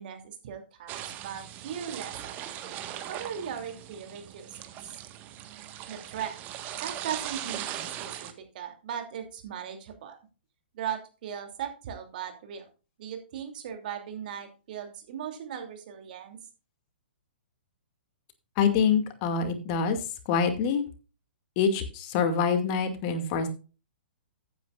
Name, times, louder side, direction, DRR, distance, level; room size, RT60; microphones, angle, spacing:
voice 1, 0.0-2.3 3.1-5.0 5.9-6.4 6.8-10.2 10.7-12.7 13.0-16.4, right 8 dB, 50° right, 5 dB, 2.8 m, -38 dB
sound 1, 0.9-8.3, right 11 dB, 30° right, 1.4 m, -39 dB
voice 2, 18.6-20.0 20.3-20.8 21.6-23.5, left 6 dB, 40° left, 7 dB, 2.2 m, -25 dB
15.0 x 9.3 x 2.5 m, 0.33 s
figure-of-eight pair, 120°, 6 cm